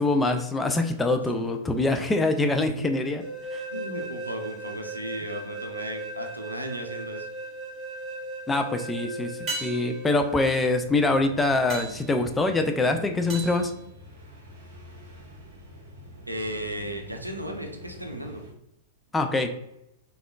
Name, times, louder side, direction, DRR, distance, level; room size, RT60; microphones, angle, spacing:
voice 1, 0.0-3.2 3.5-3.6 8.5-9.3 9.6-13.7 19.1-19.5, left 2 dB, 10° left, 6 dB, 0.3 m, -24 dB
voice 2, 1.3-2.2 2.6-2.9 3.7-7.3 16.3-18.4, right 1 dB, 90° right, 3 dB, 0.4 m, -36 dB
sound 1, 3.2-10.8, right 1 dB, 5° right, 1.2 m, -37 dB
sound 2, 7.3-7.7 9.5-14.6 19.1-19.2, right 3 dB, 25° right, 1.0 m, -40 dB
sound 3, 10.6-18.5, equal, 60° right, 0.8 m, -46 dB
3.5 x 2.3 x 2.2 m, 0.83 s
figure-of-eight pair, 100°, 0 cm